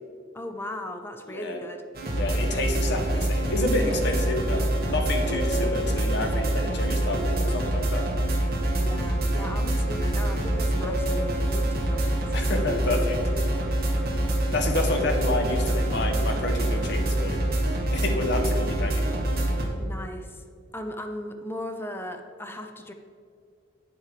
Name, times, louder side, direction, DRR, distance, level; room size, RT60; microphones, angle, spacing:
voice 1, 0.3-1.8 8.8-12.3 19.8-20.4 20.7-22.9, left 1 dB, 10° left, 5 dB, 0.6 m, -37 dB
sound 1, 1.9-19.6, right 1 dB, 50° right, 1.9 m, -25 dB
voice 2, 2.2-8.1 12.3-13.2 14.5-17.4 17.9-19.1, left 2 dB, 60° left, 3 dB, 1.4 m, -29 dB
9.0 x 7.4 x 5.0 m, 2.2 s
head